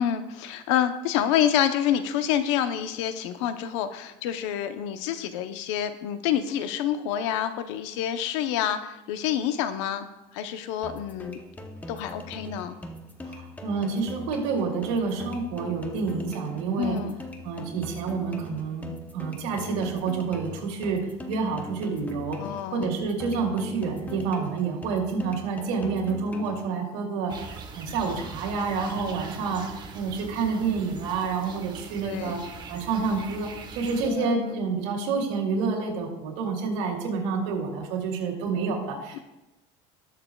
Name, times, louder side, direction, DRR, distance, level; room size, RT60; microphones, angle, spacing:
voice 1, 0.0-10.1 10.3-11.4 11.9-12.8 16.8-17.2 22.4-23.0 32.0-32.4 34.0-34.6 39.1-39.2, left 10 dB, 85° left, 10 dB, 0.8 m, -27 dB
sound 1, 10.8-26.8, left 1 dB, 10° left, 0.8 m, -42 dB
voice 2, 13.3-17.1 17.4-29.7 29.9-39.2, right 4 dB, 80° right, 0 dB, 2.7 m, -28 dB
sound 2, 27.3-34.1, right 5 dB, 30° right, 1.2 m, -42 dB
20.0 x 6.7 x 2.3 m, 0.96 s
cardioid pair, 140°, 15 cm